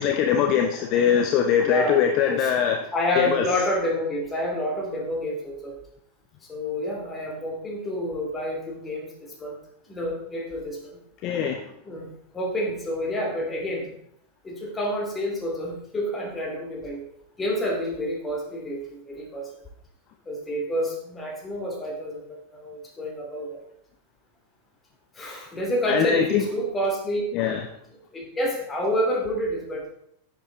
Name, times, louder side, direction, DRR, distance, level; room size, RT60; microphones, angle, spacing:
voice 1, 0.0-2.8 3.2-3.4 11.2-11.6 25.9-26.4 27.3-27.7, left 8 dB, 40° left, 5 dB, 0.8 m, -22 dB
voice 2, 1.6-2.5 2.9-5.8 6.5-9.6 9.9-11.0 11.8-13.9 14.4-17.0 17.4-19.5 20.3-23.6 25.1-27.2 28.1-29.8, left 1 dB, 15° left, 0 dB, 2.9 m, -29 dB
10.5 x 7.3 x 4.0 m, 0.72 s
figure-of-eight pair, 90°, 0 cm